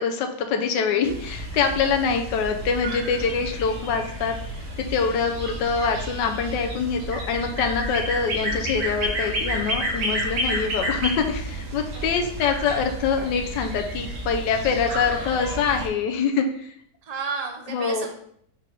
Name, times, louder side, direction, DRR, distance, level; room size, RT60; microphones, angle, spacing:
voice 1, 0.0-4.4 4.8-16.7 17.7-18.1, left 6 dB, 90° left, 4 dB, 1.4 m, -25 dB
sound 1, 1.0-15.9, right 1 dB, 70° right, 2.0 m, -31 dB
voice 2, 11.9-12.4 17.0-18.1, right 4 dB, 35° right, 3 dB, 0.6 m, -34 dB
5.1 x 4.6 x 4.7 m, 0.66 s
omnidirectional pair, 1.9 m